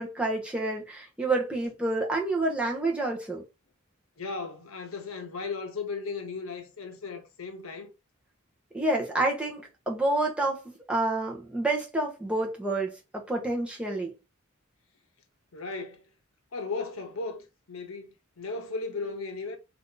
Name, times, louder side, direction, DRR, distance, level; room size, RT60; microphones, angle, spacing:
voice 1, 0.0-3.4 8.7-14.1, right 2 dB, 5° right, 0.7 m, -28 dB
voice 2, 4.2-7.9 15.5-16.1 16.5-18.1 18.4-19.6, left 4 dB, 70° left, 0.7 m, -36 dB
2.6 x 2.5 x 3.6 m
head